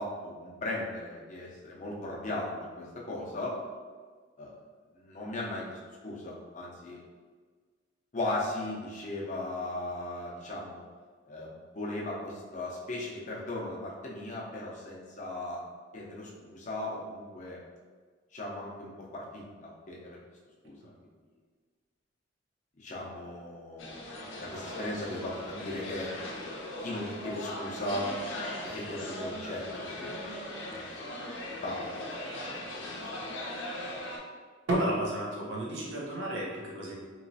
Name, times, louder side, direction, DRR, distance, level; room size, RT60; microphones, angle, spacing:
voice 1, 0.0-3.6 4.4-4.5 4.9-5.8 6.0-7.0 8.1-10.8 11.3-15.6 15.9-17.6 18.3-20.2 20.6-20.9 22.8-24.1 24.4-26.1 26.8-28.1 28.6-30.3 30.7-31.1 31.6-32.1 32.4-33.0, left 1 dB, 40° left, -4 dB, 0.6 m, -37 dB
sound 1, 23.8-34.2, left 1 dB, 80° left, 0.6 m, -39 dB
voice 2, 34.7-36.9, right 1 dB, 75° right, -4 dB, 0.8 m, -31 dB
3.1 x 2.9 x 2.7 m, 1.5 s
head